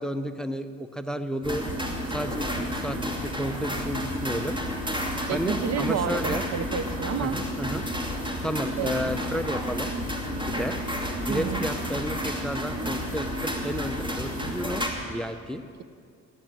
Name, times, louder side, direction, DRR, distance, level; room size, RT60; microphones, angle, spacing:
voice 1, 0.0-1.7 2.1-4.6 5.3-6.5 7.2-7.8 8.4-9.9 10.5-10.8 11.3-15.6, equal, ahead, 9 dB, 0.8 m, -32 dB
sound 1, 1.4-14.9, equal, 15° right, 2.6 m, -31 dB
voice 2, 5.3-7.4 8.8-8.9 11.3-11.7, right 7 dB, 60° right, 12 dB, 0.9 m, -30 dB
16.0 x 11.0 x 7.6 m, 2.2 s
cardioid pair, 90°, 30 cm